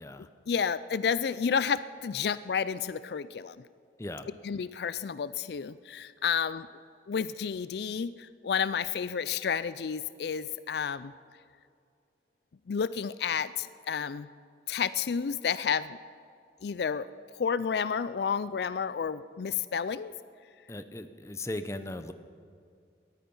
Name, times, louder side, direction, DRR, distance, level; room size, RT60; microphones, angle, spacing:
voice 1, 0.5-3.6 4.4-6.7 7.1-11.1 12.7-14.3 14.7-16.0 16.6-20.1, left 6 dB, 65° left, 16 dB, 0.4 m, -31 dB
voice 2, 20.7-22.1, left 1 dB, 15° left, 10 dB, 0.7 m, -38 dB
19.0 x 13.5 x 5.5 m, 2.3 s
head